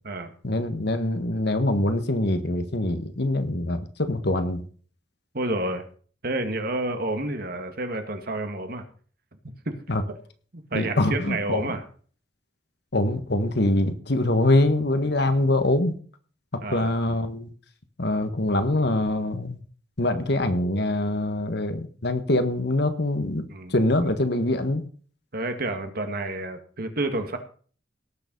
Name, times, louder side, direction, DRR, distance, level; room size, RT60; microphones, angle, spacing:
voice 1, 0.4-4.6 9.9-10.0 10.7-11.7 12.9-15.9 16.7-17.5 18.0-19.6 20.0-24.8, left 1 dB, 60° left, 9 dB, 1.5 m, -24 dB
voice 2, 5.3-5.8 6.2-8.9 9.7-9.8 10.5-11.8 16.6-16.9 23.5-23.7 25.3-27.4, right 2 dB, 50° right, 6 dB, 2.0 m, -29 dB
18.0 x 7.0 x 5.4 m, 0.43 s
head